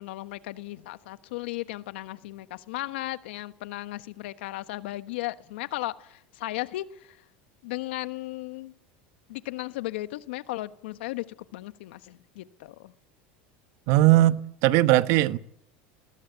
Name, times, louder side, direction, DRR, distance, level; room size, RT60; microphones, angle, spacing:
voice 1, 0.0-7.2 7.6-8.7 9.3-11.3 11.5-12.9, left 17 dB, 80° left, 1.3 m, -35 dB
voice 2, 13.9-15.4, right 16 dB, 60° right, 1.1 m, -19 dB
20.0 x 19.5 x 8.2 m
supercardioid pair, 120°, 6 cm